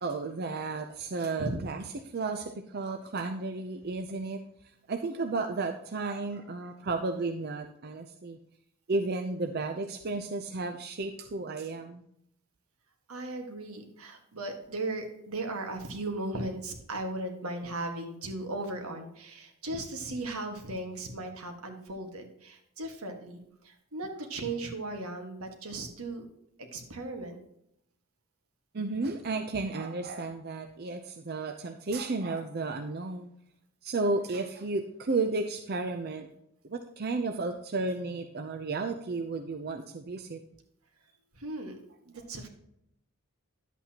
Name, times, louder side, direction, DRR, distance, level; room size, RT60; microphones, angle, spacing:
voice 1, 0.0-1.8 2.1-4.4 4.9-8.4 8.9-12.0 28.7-33.3 33.8-36.3 36.6-40.4, right 3 dB, 45° right, 5 dB, 0.5 m, -33 dB
voice 2, 13.1-26.3 26.6-27.4 41.3-41.8 42.1-42.5, right 2 dB, 80° right, 4 dB, 1.6 m, -37 dB
11.0 x 8.1 x 2.9 m, 0.77 s
head